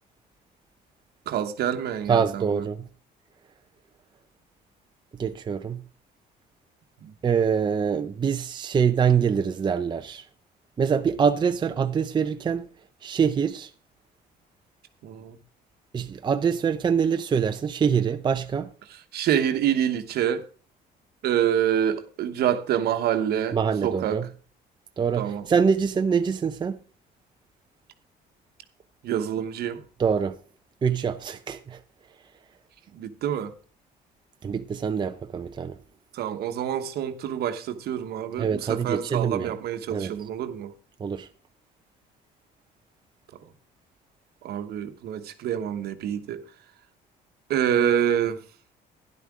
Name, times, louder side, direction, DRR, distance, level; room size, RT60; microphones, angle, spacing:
voice 1, 1.3-2.6 7.0-7.1 15.0-15.4 19.1-20.4 21.2-23.6 23.8-24.2 25.2-25.5 29.0-29.8 32.9-33.5 36.1-40.7 44.4-46.4 47.5-48.4, right 9 dB, 70° right, 1.1 m, -26 dB
voice 2, 2.1-2.9 5.1-5.8 7.2-10.3 10.8-12.7 13.0-13.7 15.9-18.7 23.5-24.3 25.0-26.8 30.0-30.4 30.8-31.8 34.4-35.8 38.4-39.6 39.9-40.1 41.0-41.3, right 6 dB, 25° right, 0.5 m, -24 dB
12.5 x 11.0 x 3.6 m
cardioid pair, 110°, 17 cm